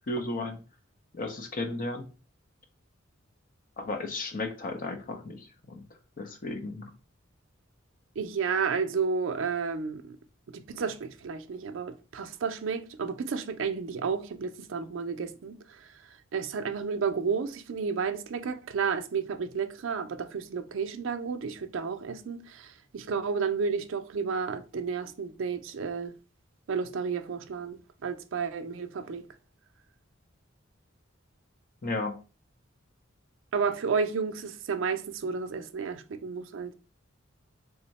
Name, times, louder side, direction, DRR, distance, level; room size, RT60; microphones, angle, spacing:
voice 1, 0.1-0.6 1.1-2.1 3.8-5.8 6.2-6.9 31.8-32.2, left 2 dB, 45° left, 0.6 m, -34 dB
voice 2, 8.2-10.2 10.5-15.9 16.3-26.1 26.7-29.2 33.5-36.7, right 5 dB, 70° right, 0.4 m, -32 dB
3.5 x 2.1 x 4.0 m
head